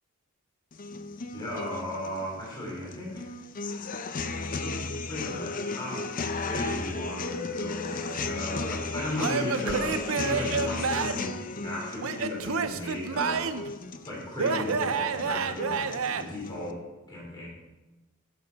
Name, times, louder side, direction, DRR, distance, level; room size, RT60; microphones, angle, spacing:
sound 1, 0.7-16.7, left 3 dB, 40° left, 0.6 m, -35 dB
voice 1, 1.3-3.3 4.2-13.5 14.1-17.5, left 1 dB, 20° left, -5 dB, 3.3 m, -36 dB
Male speech man speaking / Yell / Laughter, 9.2-11.3 12.0-13.7 14.4-16.2, right 5 dB, 70° right, 0.6 m, -29 dB
13.0 x 7.0 x 4.1 m, 1.1 s
head